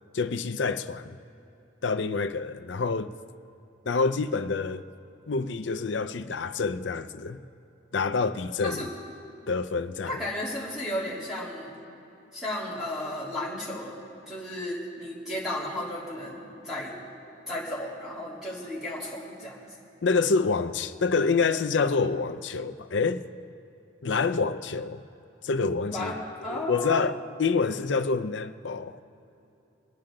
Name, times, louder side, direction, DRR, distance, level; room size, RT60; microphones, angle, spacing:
voice 1, 0.1-1.2 1.8-3.1 3.9-4.9 5.3-7.4 7.9-8.9 9.5-10.2 20.0-23.2 24.0-25.0 25.4-26.2 26.5-29.0, left 4 dB, 70° left, 0.6 m, -27 dB
voice 2, 8.6-8.9 10.0-11.8 12.3-14.0 14.3-16.9 17.5-19.7 25.9-26.2 26.4-27.1, left 1 dB, 5° right, 3.2 m, -34 dB
25.0 x 10.0 x 3.8 m
head